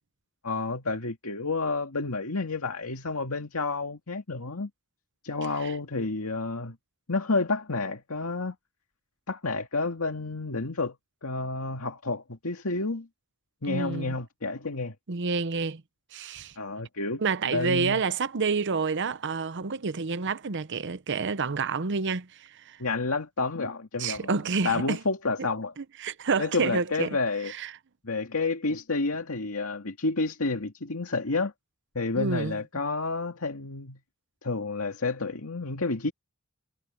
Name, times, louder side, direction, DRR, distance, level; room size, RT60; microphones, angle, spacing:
voice 1, 0.4-4.7 5.2-6.8 7.1-8.6 9.3-11.0 11.2-13.1 13.6-14.9 16.6-17.2 17.5-18.0 22.8-24.3 24.6-25.7 26.4-27.5 28.0-31.5 31.9-34.0 34.4-36.1, left 3 dB, 85° left, 2.1 m, -30 dB
voice 2, 13.7-14.1 15.1-15.8 16.1-16.5 17.2-22.8 24.0-25.0 25.8-27.2 27.4-27.7 32.2-32.6, right 4 dB, 55° right, 0.8 m, -29 dB
head